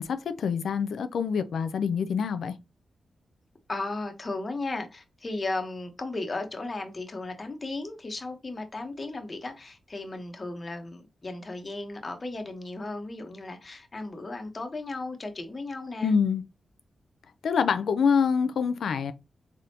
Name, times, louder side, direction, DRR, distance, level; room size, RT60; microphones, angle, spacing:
voice 1, 0.0-2.5 16.0-16.4 17.4-19.1, left 6 dB, 85° left, 0.4 m, -26 dB
voice 2, 3.7-16.1, left 2 dB, 40° left, 1.0 m, -35 dB
3.7 x 3.5 x 2.8 m
cardioid pair, 80°, 0 cm